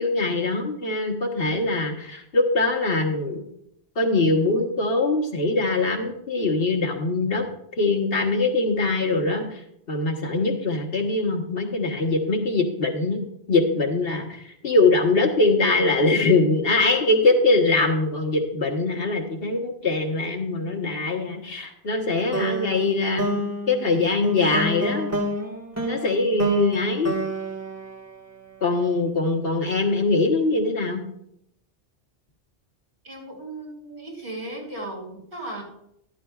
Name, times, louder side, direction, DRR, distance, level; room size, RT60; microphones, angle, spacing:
voice 1, 0.0-3.4 4.0-7.4 7.8-9.6 9.9-13.2 13.5-14.3 14.6-23.3 23.7-25.1 25.9-27.2 28.6-31.0, left 3 dB, 65° left, 2 dB, 1.6 m, -22 dB
sound 1, 22.3-28.7, right 1 dB, 15° right, 1.6 m, -29 dB
voice 2, 33.0-35.6, right 1 dB, 80° right, -4 dB, 4.8 m, -36 dB
13.0 x 12.5 x 2.4 m, 0.76 s
omnidirectional pair, 1.1 m